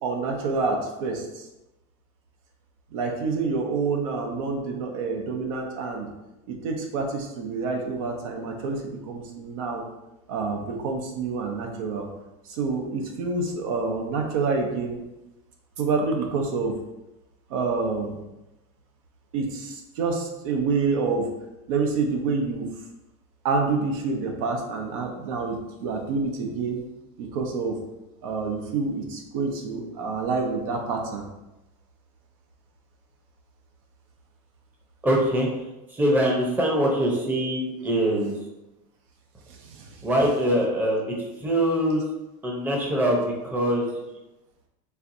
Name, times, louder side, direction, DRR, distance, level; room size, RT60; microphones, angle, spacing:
voice 1, 0.0-1.5 2.9-6.1 6.5-9.8 10.3-12.1 12.5-15.0 15.8-16.7 17.5-18.2 19.3-21.3 21.7-22.7 23.4-26.8 27.2-27.8 28.2-31.2 39.5-40.0, right 4 dB, 75° right, 2 dB, 0.8 m, -27 dB
voice 2, 35.0-35.5 35.9-38.3 40.0-42.0 42.4-43.9, equal, 10° right, -1 dB, 0.7 m, -23 dB
4.5 x 3.4 x 2.6 m, 0.97 s
supercardioid pair, 150°, 18 cm